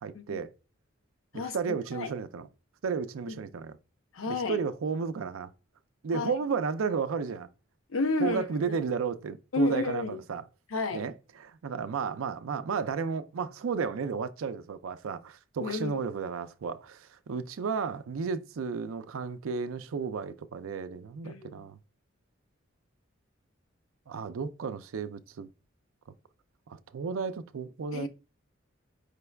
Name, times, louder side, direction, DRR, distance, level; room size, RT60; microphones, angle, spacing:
voice 1, 0.0-0.5 1.3-2.5 2.8-3.8 4.3-5.5 6.0-7.5 8.2-10.4 10.9-21.8 24.1-25.5 26.7-28.1, right 5 dB, 85° right, 0.4 m, -33 dB
voice 2, 4.1-4.6 6.1-6.4 7.9-8.8 9.5-10.2 10.7-11.0 15.6-16.0 21.2-21.7 27.9-28.1, left 3 dB, 85° left, 0.6 m, -31 dB
5.1 x 3.3 x 2.3 m
head